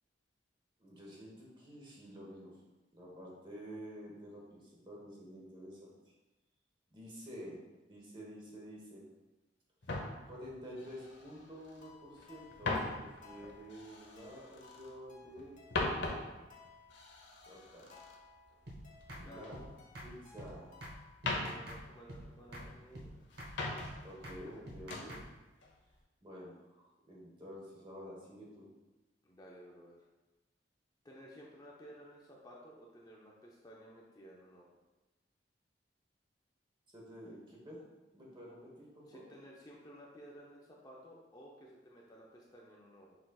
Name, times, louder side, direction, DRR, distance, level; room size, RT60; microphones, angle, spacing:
voice 1, 0.8-2.6 2.9-6.1 6.9-7.6 7.9-9.0 10.3-15.6 17.5-17.9 19.1-19.7 20.0-20.7 24.0-25.2 26.2-28.7 36.9-37.8 38.1-39.3, equal, 25° right, -3 dB, 1.1 m, -50 dB
sound 1, 9.8-11.9 12.2-15.0 15.3-19.5 19.8-20.7 21.1-22.9 23.3-24.2 24.4-25.1 25.6-25.9, left 2 dB, 65° left, 0.7 m, -41 dB
sound 2, 11.8-21.2, left 5 dB, 45° left, 0.9 m, -60 dB
sound 3, 18.7-18.8 19.1-19.2 19.5-19.7 19.9-20.1 20.4-20.5 20.8-21.0 21.2-21.8 22.1-22.2 22.5-22.7 22.9-23.1 23.4-23.5 23.8-23.9 24.2-24.4 24.7-25.2, equal, 60° right, 0.9 m, -47 dB
voice 2, 19.2-19.6 21.4-23.1 29.2-30.1 31.0-34.7 39.1-43.2, equal, 20° left, -3 dB, 0.5 m, -55 dB
6.0 x 3.9 x 2.3 m, 1.1 s
head